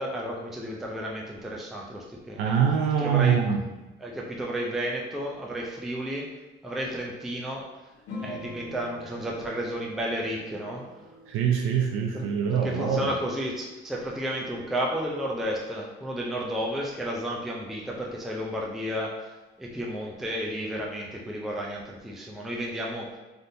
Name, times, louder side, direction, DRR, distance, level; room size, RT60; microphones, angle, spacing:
voice 1, 0.0-2.6 3.0-3.4 4.0-6.3 6.6-7.7 8.2-10.9 12.1-12.3 12.5-19.3 19.6-23.2, equal, ahead, -2 dB, 0.4 m, -32 dB
voice 2, 2.4-3.6 11.3-13.1, right 7 dB, 85° right, 2 dB, 0.4 m, -24 dB
sound 1, 8.1-13.0, left 2 dB, 75° left, 1.0 m, -44 dB
3.5 x 2.6 x 2.6 m, 1.1 s
cardioid pair, 100°, 21 cm